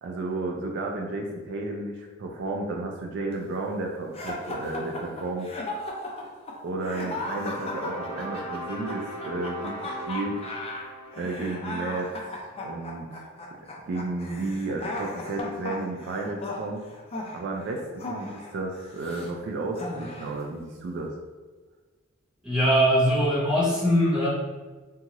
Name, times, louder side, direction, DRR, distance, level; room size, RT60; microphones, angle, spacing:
voice 1, 0.0-5.5 6.6-10.4 11.2-13.3 13.9-16.8 17.3-21.1, right 2 dB, 60° right, 1 dB, 0.3 m, -32 dB
sound 1, 4.1-19.3 19.7-20.4, left 2 dB, 30° left, 0.4 m, -36 dB
sound 2, 6.9-13.1, right 1 dB, 50° left, 0.8 m, -40 dB
voice 2, 22.4-24.3, equal, 5° right, -8 dB, 0.9 m, -21 dB
2.7 x 2.3 x 2.9 m, 1.3 s
head